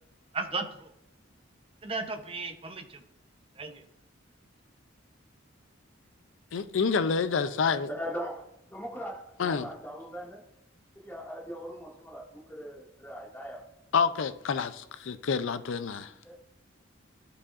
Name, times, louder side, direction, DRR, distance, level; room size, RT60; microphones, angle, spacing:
voice 1, 0.3-0.9 1.8-3.0 3.6-3.8, right 3 dB, 25° right, 6 dB, 0.7 m, -35 dB
voice 2, 6.5-7.9 9.4-9.7 13.9-16.1, left 5 dB, 70° left, 12 dB, 0.4 m, -28 dB
voice 3, 7.9-10.4 10.9-13.6 16.2-16.4, equal, 10° left, -4 dB, 1.9 m, -40 dB
11.0 x 4.9 x 2.5 m, 0.80 s
head